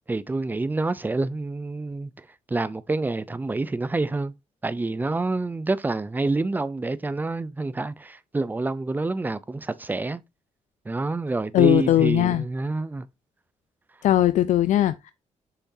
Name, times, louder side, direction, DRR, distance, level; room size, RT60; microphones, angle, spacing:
voice 1, 0.1-2.1 2.5-4.3 4.6-10.2 10.9-13.1, right 3 dB, 15° right, 0.5 m, -27 dB
voice 2, 11.5-12.4 14.0-15.1, left 13 dB, 85° left, 0.4 m, -19 dB
7.0 x 5.8 x 2.7 m
wide cardioid pair, 145°, 12 cm